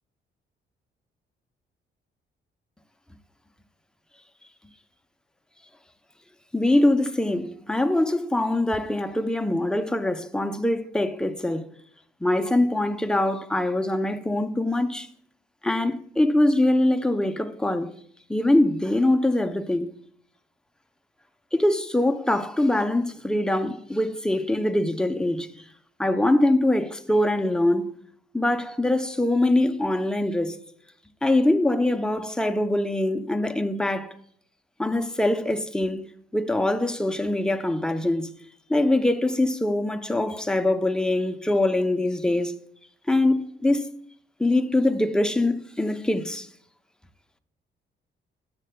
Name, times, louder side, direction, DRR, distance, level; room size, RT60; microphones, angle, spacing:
voice 1, 6.5-11.6 12.2-15.1 15.6-17.9 18.3-19.9 21.5-25.5 26.0-27.9 28.3-30.6 31.2-34.1 34.8-36.0 36.3-38.3 38.7-42.5 43.1-43.9 44.4-46.5, left 1 dB, 5° left, 0.6 m, -23 dB
13.0 x 7.5 x 2.2 m
cardioid pair, 90°, 20 cm